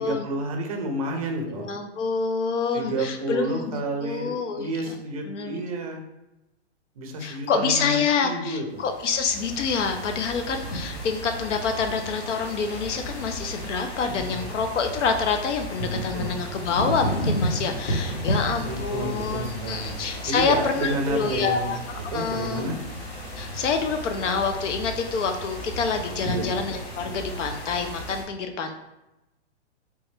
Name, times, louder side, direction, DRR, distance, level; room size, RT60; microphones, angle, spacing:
voice 1, 0.0-1.7 2.7-6.0 7.0-8.8 14.1-14.5 15.9-16.4 18.6-20.0 20.3-21.7 22.1-22.8 26.3-26.5, right 2 dB, 30° right, 3 dB, 0.5 m, -30 dB
voice 2, 1.5-4.9 5.3-5.6 7.2-21.8 22.1-22.7 23.4-28.8, left 5 dB, 85° left, 6 dB, 0.6 m, -27 dB
sound 1, 8.7-28.2, equal, 60° left, 1.2 m, -33 dB
3.4 x 3.0 x 3.1 m, 0.95 s
hypercardioid pair, 165°, 35 cm